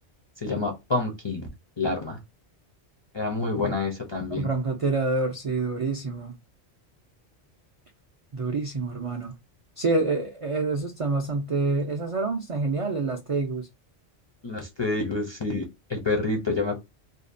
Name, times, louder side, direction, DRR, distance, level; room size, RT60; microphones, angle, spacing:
voice 1, 0.4-1.5 1.8-2.2 3.1-4.5 14.4-16.8, left 3 dB, 35° left, 0.4 m, -28 dB
voice 2, 4.3-6.3 8.3-9.3 9.8-13.7, right 3 dB, 55° right, 0.3 m, -27 dB
2.6 x 2.1 x 2.5 m
omnidirectional pair, 1.1 m